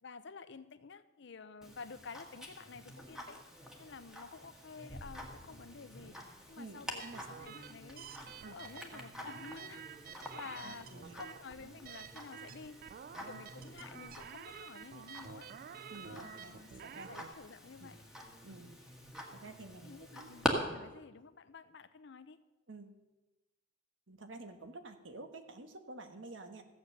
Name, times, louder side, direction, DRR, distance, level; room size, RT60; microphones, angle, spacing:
voice 1, 0.0-3.4 3.8-7.0 7.4-8.1 8.4-12.9 13.2-15.5 16.0-16.7 17.1-18.0 18.5-18.6 19.8-22.4, left 4 dB, 65° left, 13 dB, 0.7 m, -51 dB
Tick-tock, 1.6-20.5, equal, 5° right, 1.6 m, -46 dB
voice 2, 6.6-7.2 8.4-8.6 10.6-11.2 15.9-16.5 16.8-17.3 17.8-17.9 18.4-18.7 19.3-20.3 22.7-23.0 24.1-26.6, right 2 dB, 75° right, 7 dB, 1.3 m, -50 dB
sound 1, 7.0-17.3, right 8 dB, 50° right, 0.3 m, -51 dB
15.0 x 8.0 x 6.6 m, 1.1 s
head